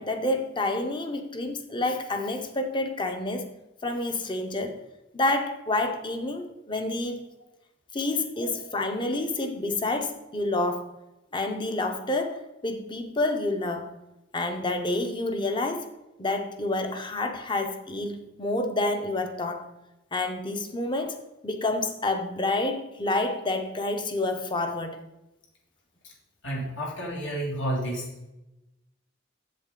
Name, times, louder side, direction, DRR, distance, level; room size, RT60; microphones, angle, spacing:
voice 1, 0.0-3.5 3.8-4.8 5.1-7.3 7.9-10.9 11.3-13.9 14.3-15.9 16.2-19.7 20.1-25.0, left 2 dB, 25° left, 6 dB, 0.7 m, -28 dB
voice 2, 26.4-28.1, right 1 dB, 75° left, -2 dB, 2.3 m, -30 dB
7.6 x 7.5 x 3.8 m, 0.96 s
head